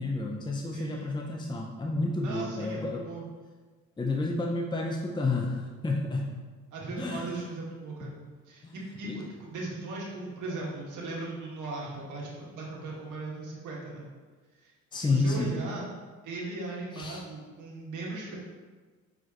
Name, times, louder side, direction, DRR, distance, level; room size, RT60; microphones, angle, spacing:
voice 1, 0.0-3.1 4.0-6.4 7.0-7.3 8.1-8.2 8.6-8.7 9.1-9.2 10.1-10.3 11.1-11.2 14.9-15.6 16.9-17.2, left 2 dB, 15° left, 0 dB, 0.7 m, -30 dB
voice 2, 0.7-1.2 2.2-3.3 6.7-8.1 8.5-14.1 14.6-15.9 16.2-18.4, right 2 dB, 80° right, -4 dB, 1.9 m, -38 dB
7.5 x 4.9 x 3.0 m, 1.4 s
cardioid pair, 90°, 30 cm